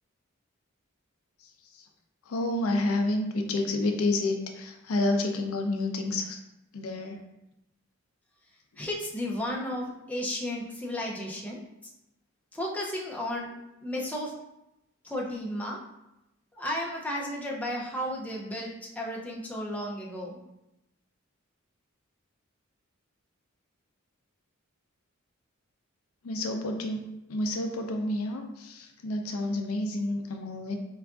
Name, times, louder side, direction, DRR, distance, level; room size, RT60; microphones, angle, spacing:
voice 1, 2.3-6.4 6.7-7.2 26.2-27.0 27.3-30.8, left 2 dB, 90° left, 4 dB, 0.5 m, -29 dB
voice 2, 8.8-11.6 12.5-14.3 15.0-15.8 16.5-20.4, left 1 dB, 5° left, -3 dB, 0.4 m, -33 dB
4.5 x 2.4 x 2.3 m, 0.89 s
head